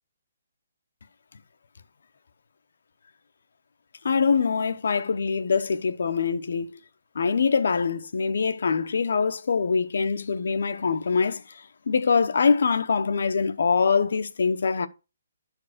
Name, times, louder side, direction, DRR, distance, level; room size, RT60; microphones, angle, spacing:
voice 1, 4.0-6.8 7.1-11.4 11.9-14.9, left 5 dB, 65° left, 0.8 m, -24 dB
10.5 x 4.7 x 5.1 m
hypercardioid pair, 175°, 0 cm